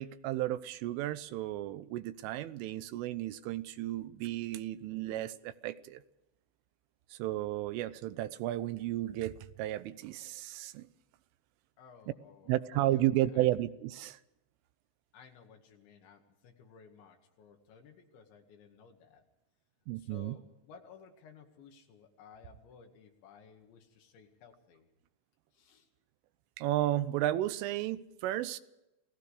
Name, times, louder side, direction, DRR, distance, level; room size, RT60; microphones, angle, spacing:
voice 1, 0.0-6.0 7.1-10.9 12.5-14.2 19.9-20.4 26.6-28.6, right 14 dB, 85° right, 3.4 m, -33 dB
voice 2, 11.8-13.1 13.3-13.5 15.1-19.2 20.0-24.9 25.5-25.9, left 6 dB, 70° left, 4.3 m, -57 dB
29.0 x 18.0 x 5.0 m
omnidirectional pair, 5.6 m